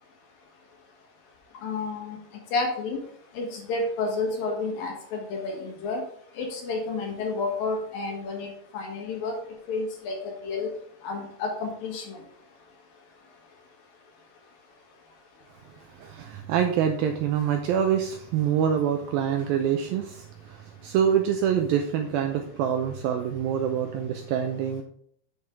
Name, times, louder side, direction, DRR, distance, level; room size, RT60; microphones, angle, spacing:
voice 1, 1.6-2.2 2.5-3.0 3.4-6.0 6.4-9.3 9.7-10.7 11.0-12.2, left 3 dB, 65° left, 1 dB, 2.9 m, -30 dB
voice 2, 16.0-24.8, right 8 dB, 85° right, 5 dB, 2.1 m, -26 dB
8.7 x 6.6 x 3.5 m, 0.67 s
omnidirectional pair, 4.9 m